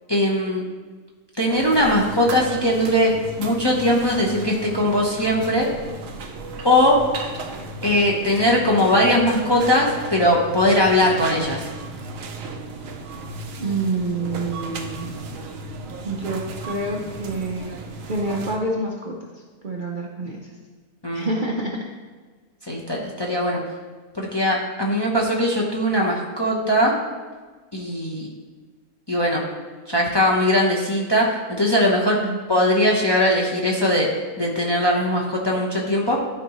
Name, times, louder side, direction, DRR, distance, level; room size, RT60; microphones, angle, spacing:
voice 1, 0.1-0.6 1.4-3.1 3.4-5.7 6.6-7.0 7.8-11.7 21.0-21.3 22.7-23.6 24.1-26.9 27.7-28.3 29.1-29.4 29.9-32.2 32.5-34.1 34.4-36.2, left 1 dB, 20° left, -2 dB, 0.8 m, -20 dB
sound 1, 1.5-18.6, right 2 dB, 65° right, 1.1 m, -35 dB
voice 2, 13.6-15.1 16.0-17.7 18.1-19.3 19.6-20.5 21.1-21.8 32.1-32.4, right 2 dB, 45° right, -1 dB, 0.7 m, -27 dB
12.0 x 5.0 x 3.0 m, 1.4 s
omnidirectional pair, 1.6 m